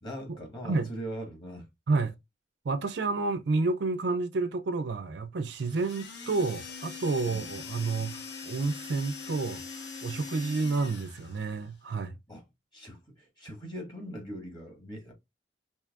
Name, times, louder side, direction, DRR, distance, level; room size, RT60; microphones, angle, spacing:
voice 1, 0.0-1.7 7.2-7.5 12.3-12.4 12.7-15.1, equal, 25° left, 1.3 m, -41 dB
voice 2, 2.6-9.6 10.0-12.2, right 3 dB, 65° right, 0.4 m, -30 dB
sound 1, 5.6-11.5, left 5 dB, 65° left, 1.0 m, -42 dB
4.5 x 2.8 x 2.3 m
head